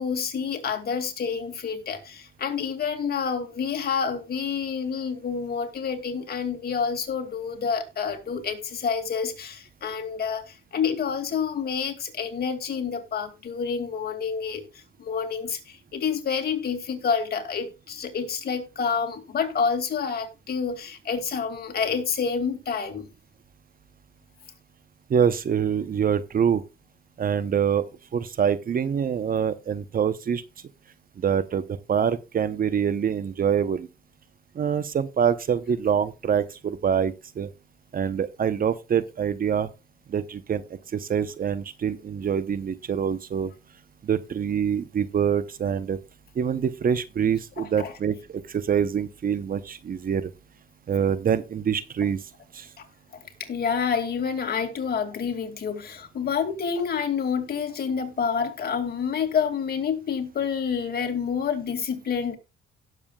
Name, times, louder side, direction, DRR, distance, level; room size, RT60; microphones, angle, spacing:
voice 1, 0.0-14.6 15.0-23.1 47.6-47.9 52.8-52.9 53.1-62.4, left 6 dB, 50° left, 2.4 m, -28 dB
voice 2, 25.1-26.6 27.2-27.8 28.1-30.4 31.2-33.9 34.5-37.5 37.9-39.7 40.1-40.6 40.9-43.5 44.0-46.0 46.4-50.3 50.9-52.2 52.5-52.7, right 7 dB, 45° right, 0.9 m, -25 dB
17.5 x 7.1 x 2.4 m
cardioid pair, 90°, 20 cm